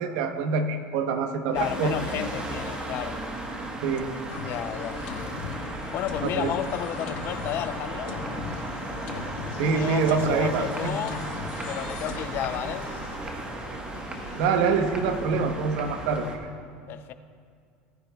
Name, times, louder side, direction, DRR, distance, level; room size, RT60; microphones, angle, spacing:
voice 1, 0.0-1.9 3.8-4.2 6.2-6.5 9.6-10.9 14.4-16.4, right 5 dB, 75° right, 7 dB, 1.0 m, -25 dB
voice 2, 1.5-3.2 4.4-5.0 5.9-8.2 9.7-11.2 11.7-12.9 16.9-17.1, left 10 dB, 50° left, 11 dB, 0.6 m, -32 dB
sound 1, 1.5-16.4, right 1 dB, 20° right, 1.3 m, -35 dB
sound 2, 4.3-14.5, left 6 dB, 80° left, 1.1 m, -39 dB
17.5 x 9.8 x 2.4 m, 2.2 s
supercardioid pair, 120°, 5 cm